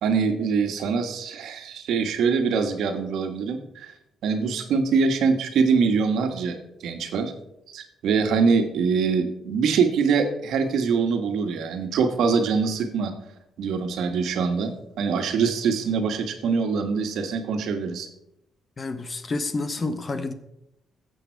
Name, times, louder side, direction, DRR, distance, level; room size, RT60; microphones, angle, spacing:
voice 1, 0.0-3.9 4.2-7.3 7.7-13.1 13.6-18.1, right 5 dB, 75° right, 6 dB, 1.7 m, -24 dB
voice 2, 18.8-20.3, left 3 dB, 35° left, 11 dB, 1.2 m, -29 dB
14.5 x 7.9 x 4.7 m, 0.83 s
cardioid pair, 90°, 0 cm